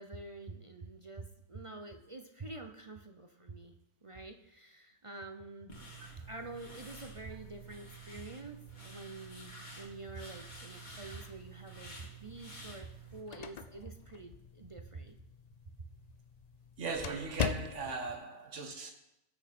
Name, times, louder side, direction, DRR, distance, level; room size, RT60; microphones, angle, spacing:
voice 1, 0.0-3.7 4.0-5.9 6.3-15.2, right 3 dB, 30° right, 0.6 m, -47 dB
sound 1, 5.7-13.2, right 3 dB, 30° left, 2.2 m, -50 dB
sound 2, 12.9-18.1, left 6 dB, 80° left, 0.3 m, -42 dB
voice 2, 16.8-18.9, right 3 dB, 55° right, 1.8 m, -38 dB
19.0 x 6.4 x 4.3 m
omnidirectional pair, 1.5 m